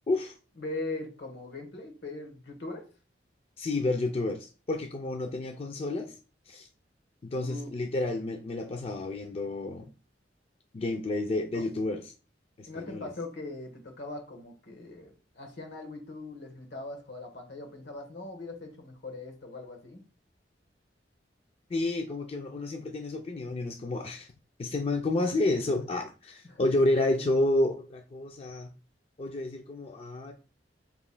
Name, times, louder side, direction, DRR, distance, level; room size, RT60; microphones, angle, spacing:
voice 1, 0.6-2.9 7.4-7.7 11.5-11.6 12.7-20.1 26.4-26.7, left 2 dB, 70° left, 1.2 m, -40 dB
voice 2, 3.6-6.2 6.5-6.7 7.2-9.9 10.7-12.1 12.6-13.1 21.7-24.3 24.6-28.7 29.2-30.3, left 2 dB, 35° left, 0.4 m, -30 dB
7.0 x 3.0 x 2.2 m
head